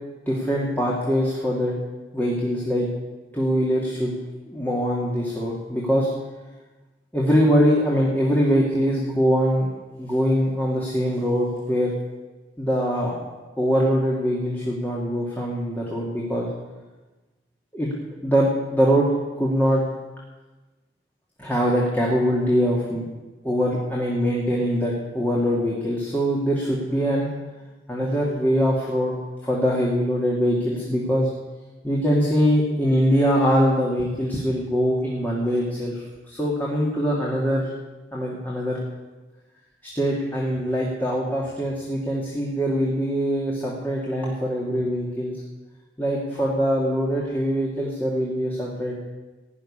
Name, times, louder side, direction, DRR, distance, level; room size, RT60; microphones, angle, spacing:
voice 1, 0.3-1.7 2.1-2.9 3.3-4.1 4.5-6.1 7.1-9.7 10.0-11.9 12.6-13.2 13.6-16.5 17.7-17.9 18.2-19.1 19.4-19.8 21.4-23.0 23.4-27.3 27.9-29.1 29.4-31.3 31.8-36.0 36.3-37.7 38.1-38.8 39.9-45.3 46.0-48.9, equal, 10° left, -4 dB, 2.1 m, -23 dB
16.5 x 6.5 x 9.9 m, 1.2 s
head